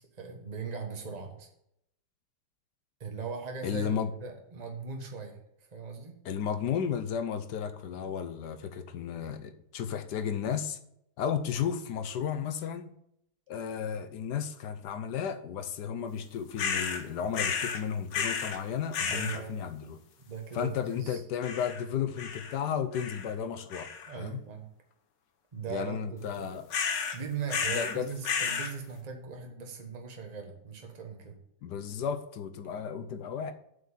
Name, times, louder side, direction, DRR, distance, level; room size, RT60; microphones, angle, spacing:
voice 1, 0.0-1.5 3.0-6.2 19.0-19.6 20.3-21.2 24.1-24.7 25.5-26.5 27.1-31.3, right 5 dB, 25° right, 2 dB, 1.4 m, -39 dB
voice 2, 3.6-4.1 6.2-10.8 11.2-12.9 13.5-20.0 20.5-23.9 24.1-24.4 25.7-26.7 27.7-28.1 31.6-33.5, left 8 dB, 75° left, 9 dB, 1.3 m, -33 dB
sound 1, 16.6-17.0 17.3-17.8 18.1-18.6 18.9-19.4 21.4-21.8 22.2-22.6 22.9-23.3 23.7-24.1 26.7-27.2 27.5-28.0 28.2-28.7, left 6 dB, 90° left, 1.7 m, -32 dB
7.6 x 5.5 x 7.3 m, 0.76 s
omnidirectional pair, 1.9 m